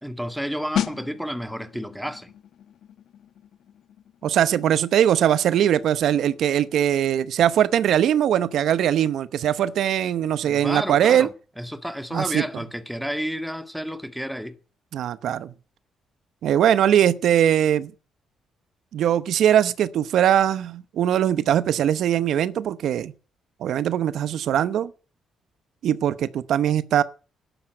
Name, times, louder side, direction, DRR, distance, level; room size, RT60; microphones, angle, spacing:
voice 1, 0.0-2.3 10.4-14.6, equal, ahead, 1.8 m, -31 dB
sound 1, 0.8-11.3 11.5-11.8, left 10 dB, 75° left, 1.3 m, -37 dB
voice 2, 4.2-11.3 12.1-12.4 14.9-15.5 16.4-17.9 18.9-23.1 23.6-24.9 25.8-27.0, right 10 dB, 75° right, 0.8 m, -21 dB
12.5 x 11.5 x 7.8 m
cardioid pair, 90°, 0 cm